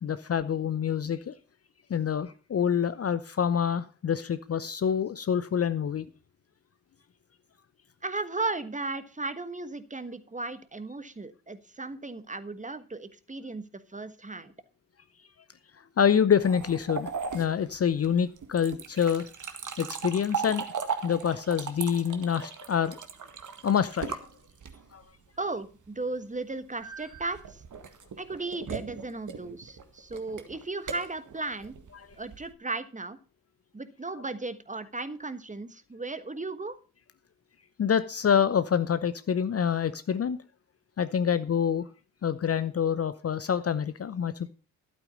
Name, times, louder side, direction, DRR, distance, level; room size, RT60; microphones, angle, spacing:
voice 1, 0.0-1.3 1.9-6.0 16.0-19.3 19.8-20.6 21.0-23.0 23.6-24.2 24.9-25.0 37.8-40.4 41.0-41.9 42.2-44.5, left 8 dB, 30° left, 0.8 m, -26 dB
voice 2, 8.0-14.5 25.4-27.6 28.2-31.7 32.2-33.2 33.7-36.8, right 3 dB, 15° right, 1.3 m, -36 dB
sound 1, 16.4-25.0 26.8-32.5, right 6 dB, 40° right, 1.8 m, -38 dB
12.0 x 8.8 x 5.2 m
hypercardioid pair, 45°, 45 cm